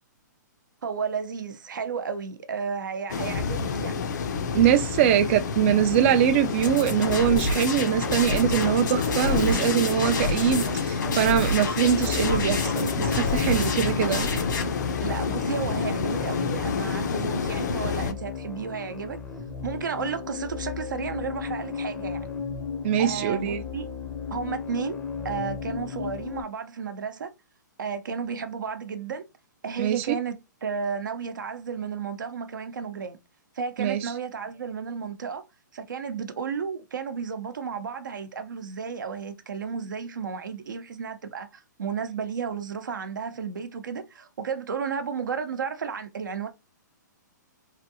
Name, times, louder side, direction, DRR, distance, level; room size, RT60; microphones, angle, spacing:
voice 1, 0.8-4.0 15.0-19.2 19.6-22.3 23.0-23.9 24.3-25.0 25.2-27.3 27.8-29.2 29.6-30.3 30.6-33.2 33.5-35.4 35.7-46.5, right 6 dB, 80° right, 0.7 m, -33 dB
sound 1, 3.1-18.1, left 5 dB, 65° left, 0.6 m, -29 dB
voice 2, 4.5-14.3 22.8-23.6 29.8-30.2 33.8-34.1, right 9 dB, 40° right, 0.4 m, -23 dB
sound 2, 6.6-14.6, left 3 dB, 80° left, 1.4 m, -29 dB
sound 3, 11.8-26.4, left 6 dB, 5° left, 0.6 m, -34 dB
3.2 x 2.6 x 2.7 m
hypercardioid pair, 140°, 10 cm